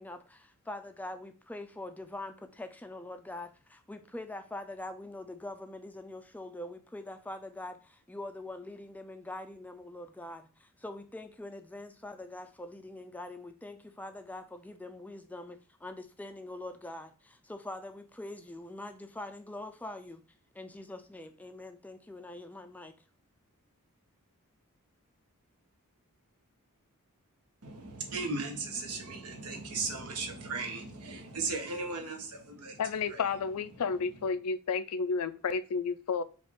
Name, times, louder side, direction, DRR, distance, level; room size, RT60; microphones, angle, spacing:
voice 1, 0.0-20.2 20.5-22.9, left 2 dB, 5° left, 8 dB, 0.3 m, -44 dB
voice 2, 27.6-32.8 33.1-33.2 33.7-33.8, right 3 dB, 80° right, 3 dB, 1.0 m, -37 dB
voice 3, 32.8-36.2, left 5 dB, 80° left, 14 dB, 0.4 m, -31 dB
5.1 x 2.4 x 3.5 m, 0.38 s
head